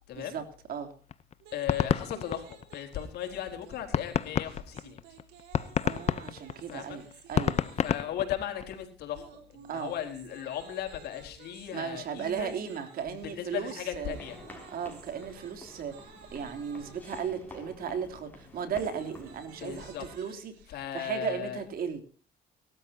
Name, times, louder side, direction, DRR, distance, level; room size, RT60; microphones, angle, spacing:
voice 1, 0.1-0.9 5.8-7.0 7.3-7.6 9.7-9.9 11.7-14.2 14.7-16.0 16.3-22.0, right 7 dB, 60° right, 6 dB, 3.4 m, -36 dB
sound 1, 1.1-3.2 3.6-3.7 3.9-8.8, left 8 dB, 40° left, 0.8 m, -29 dB
sound 2, 1.4-8.2 9.1-17.2 18.4-20.7, right 7 dB, 90° right, 4.1 m, -54 dB
voice 2, 1.5-5.0 6.7-7.0 7.8-9.2 9.5-12.5 13.0-14.4 19.6-20.0 20.7-21.6, left 10 dB, 75° left, 4 dB, 4.4 m, -37 dB
sound 3, 14.1-20.0, left 1 dB, 10° left, 6.7 m, -49 dB
23.5 x 13.0 x 2.9 m, 0.40 s
cardioid pair, 110°, 17 cm